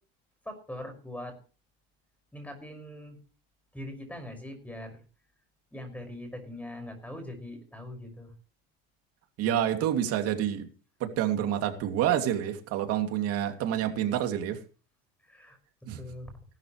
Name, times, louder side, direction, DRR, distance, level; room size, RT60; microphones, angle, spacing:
voice 1, 0.4-1.4 2.3-3.2 3.7-5.0 5.7-8.3 13.7-13.8 15.2-15.6 16.0-16.3, left 1 dB, 5° left, 7 dB, 6.0 m, -41 dB
voice 2, 9.4-10.7 11.0-14.6 15.9-16.0, right 10 dB, 50° right, 5 dB, 2.8 m, -28 dB
18.0 x 12.5 x 3.3 m, 0.36 s
supercardioid pair, 115°, 30 cm